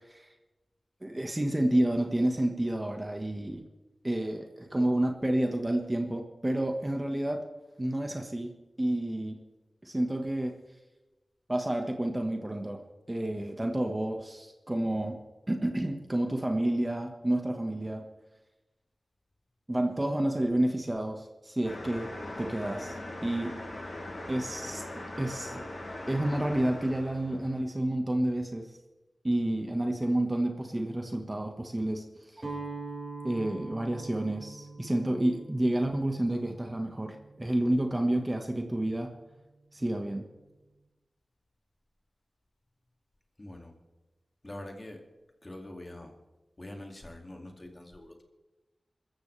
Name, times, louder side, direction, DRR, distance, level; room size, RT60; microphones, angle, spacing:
voice 1, 1.0-3.6 4.0-7.4 7.8-8.5 8.8-9.4 9.8-10.5 11.5-12.8 13.1-15.2 15.5-18.0 19.7-22.1 22.4-23.0 23.2-23.5 24.3-24.8 25.2-25.6 26.1-28.7 29.2-32.0 32.3-32.4 33.2-39.1 39.7-40.3, right 1 dB, 20° right, 3 dB, 1.4 m, -29 dB
sound 1, 21.6-27.6, left 1 dB, 50° left, 7.4 m, -40 dB
Guitar, 32.4-38.4, right 3 dB, 35° right, 6.6 m, -44 dB
voice 2, 43.4-43.7 44.4-45.0 45.4-46.1 46.6-48.2, left 1 dB, 25° left, 3 dB, 2.4 m, -44 dB
26.5 x 14.5 x 3.4 m, 1.1 s
wide cardioid pair, 90°, 0 cm